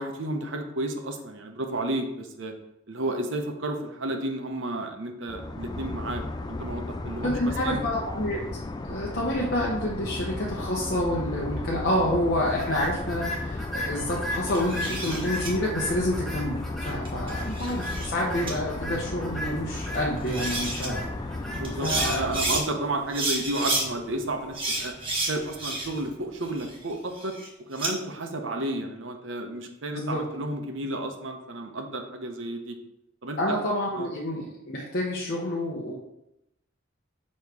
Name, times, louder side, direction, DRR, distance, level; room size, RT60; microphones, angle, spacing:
voice 1, 0.0-2.5 2.9-7.8 8.9-9.0 11.6-11.9 21.5-24.9 25.2-27.4 27.7-32.8 33.2-33.6 34.0-34.1, right 1 dB, 70° right, 4 dB, 0.9 m, -32 dB
sound 1, 5.3-22.6, left 2 dB, 20° left, 0.3 m, -34 dB
voice 2, 7.2-8.4 8.8-21.1 21.8-22.2 29.9-30.2 33.4-36.0, left 1 dB, 55° left, -4 dB, 0.9 m, -28 dB
sound 2, 12.5-26.8, equal, ahead, 0.9 m, -39 dB
sound 3, 14.5-15.5 17.1-18.1 18.5-18.6 19.9-20.0 20.3-20.9 21.6-22.6 23.1-23.9 24.5-26.1 26.4-27.9, right 2 dB, 25° right, 1.4 m, -30 dB
7.1 x 3.1 x 4.6 m, 0.85 s
head